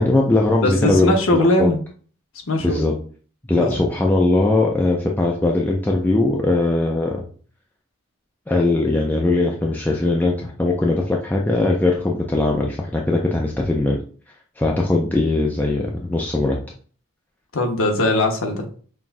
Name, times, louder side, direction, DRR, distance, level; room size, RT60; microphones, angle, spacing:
voice 1, 0.0-1.7 2.6-2.9 3.5-7.2 8.5-14.0 14.6-16.6, left 2 dB, 10° left, -1 dB, 0.3 m, -20 dB
voice 2, 0.6-1.8 2.5-2.8 3.5-3.7 17.5-18.7, left 1 dB, 70° left, 2 dB, 0.8 m, -19 dB
5.7 x 2.3 x 2.5 m, 0.43 s
head